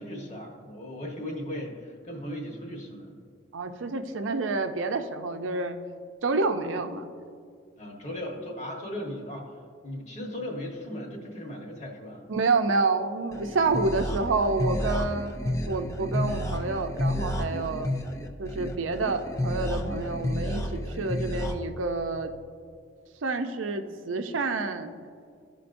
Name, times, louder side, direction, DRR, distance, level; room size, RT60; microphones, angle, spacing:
voice 1, 0.0-3.2 7.8-12.3, left 1 dB, 35° left, 0 dB, 1.2 m, -37 dB
voice 2, 3.5-5.8 6.2-7.1 12.3-15.4 15.7-17.9 18.4-22.3 23.2-24.9, right 3 dB, 80° right, 6 dB, 0.6 m, -28 dB
sound 1, 13.3-21.5, left 1 dB, 15° left, 0.5 m, -31 dB
13.5 x 5.1 x 2.6 m, 2.1 s
head